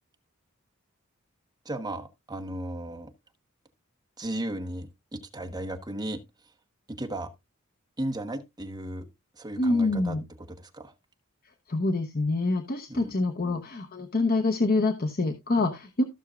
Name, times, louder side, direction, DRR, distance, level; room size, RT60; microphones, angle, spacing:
voice 1, 1.6-3.1 4.2-6.2 6.9-7.3 8.0-9.1 9.4-10.2 10.5-10.9 12.9-13.2, right 1 dB, 20° right, 1.1 m, -35 dB
voice 2, 9.6-10.2 11.7-16.0, left 2 dB, 45° left, 0.9 m, -26 dB
15.0 x 6.3 x 2.4 m
head